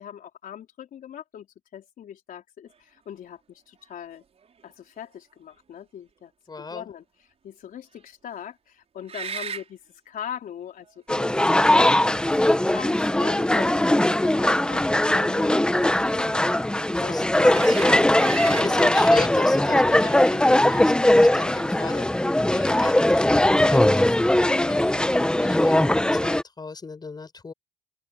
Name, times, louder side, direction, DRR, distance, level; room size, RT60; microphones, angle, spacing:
voice 1, 0.0-1.5 1.7-4.2 4.6-11.3 12.0-16.5 17.1-17.9 18.6-18.9, left 9 dB, 55° left, 4.2 m, -41 dB
sound 1, 3.8-3.9 4.4-4.6 9.0-9.7 10.9-11.0 12.0-12.8 14.7-14.9 17.5-18.7, right 6 dB, 40° right, 6.0 m, -35 dB
voice 2, 6.5-6.9 17.0-18.1 18.4-27.5, left 4 dB, 25° left, 6.3 m, -36 dB
sound 2, 11.1-26.4, left 1 dB, 5° left, 1.1 m, -20 dB
open air
cardioid pair, 110°, 17 cm